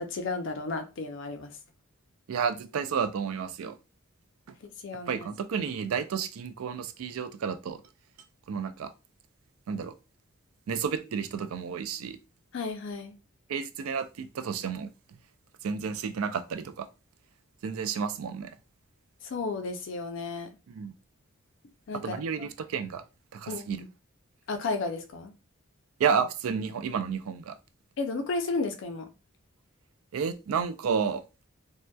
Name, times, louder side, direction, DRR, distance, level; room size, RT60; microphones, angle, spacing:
voice 1, 0.0-1.6 4.6-5.3 12.5-13.2 19.2-20.5 21.9-22.1 23.5-23.9 24.5-25.3 28.0-29.1, left 3 dB, 60° left, 0.4 m, -33 dB
voice 2, 2.3-3.8 5.1-7.8 8.5-8.9 9.7-9.9 10.7-12.2 13.5-14.9 15.6-16.9 17.6-18.5 20.7-20.9 22.0-23.0 23.3-23.8 26.0-27.6 30.1-31.2, right 6 dB, 85° right, 0.4 m, -31 dB
2.7 x 2.1 x 2.2 m
head